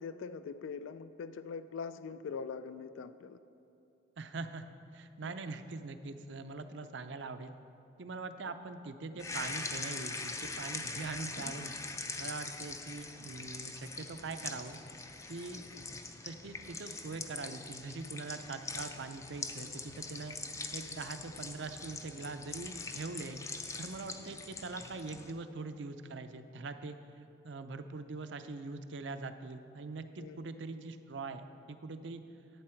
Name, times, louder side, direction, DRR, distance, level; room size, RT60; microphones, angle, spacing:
voice 1, 0.0-3.4 5.2-5.3 30.2-30.5, left 5 dB, 90° left, 12 dB, 0.3 m, -42 dB
voice 2, 4.2-4.6 4.9-7.5 8.0-11.8 12.2-14.8 15.3-15.6 16.2-20.4 20.7-23.4 23.8-32.2, right 3 dB, 70° right, 9 dB, 0.5 m, -43 dB
sound 1, 9.2-25.3, left 3 dB, 15° left, 0.4 m, -43 dB
11.0 x 8.7 x 4.5 m, 2.8 s
head